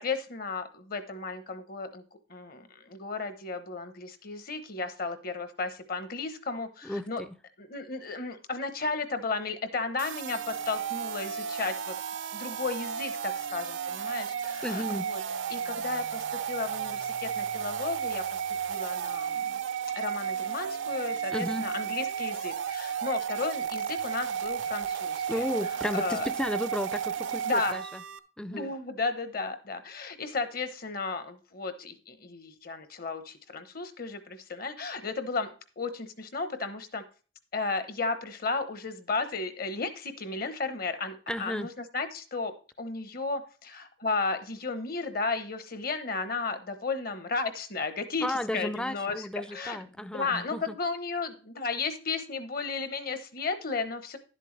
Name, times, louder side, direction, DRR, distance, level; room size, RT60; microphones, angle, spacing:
voice 1, 0.0-2.0 2.3-7.2 7.6-11.9 12.3-15.2 15.5-18.4 18.6-19.6 19.9-25.4 25.9-26.3 27.4-27.8 28.5-37.0 37.5-54.2, left 4 dB, 50° left, 0.9 m, -34 dB
voice 2, 6.8-7.3 14.6-15.1 21.3-21.7 25.3-28.0 28.4-28.7 41.3-41.7 48.2-50.8, left 1 dB, 5° left, 0.4 m, -33 dB
sound 1, 10.0-28.2, right 8 dB, 75° right, 0.6 m, -33 dB
11.0 x 7.6 x 3.2 m
head